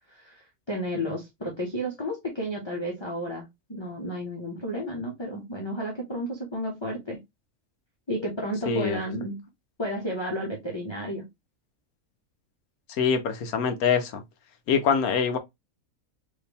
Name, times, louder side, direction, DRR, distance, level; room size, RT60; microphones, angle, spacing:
voice 1, 0.1-7.2 8.1-9.5 9.8-11.3, equal, 20° left, 1.0 m, -32 dB
voice 2, 8.7-9.0 13.0-14.2 14.7-15.4, left 6 dB, 85° left, 1.4 m, -24 dB
5.0 x 2.8 x 3.4 m
omnidirectional pair, 1.5 m